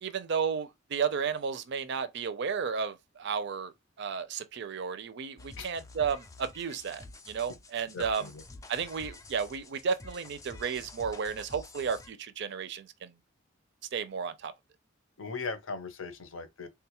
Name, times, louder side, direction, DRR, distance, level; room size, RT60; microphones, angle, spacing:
voice 1, 0.0-3.7 4.0-8.3 8.7-13.1 13.9-14.5, right 6 dB, 60° right, 0.5 m, -33 dB
sound 1, 5.4-12.1, left 2 dB, 15° left, 0.3 m, -49 dB
voice 2, 7.9-8.4 15.2-16.7, left 4 dB, 90° left, 0.7 m, -39 dB
3.6 x 2.3 x 2.9 m
head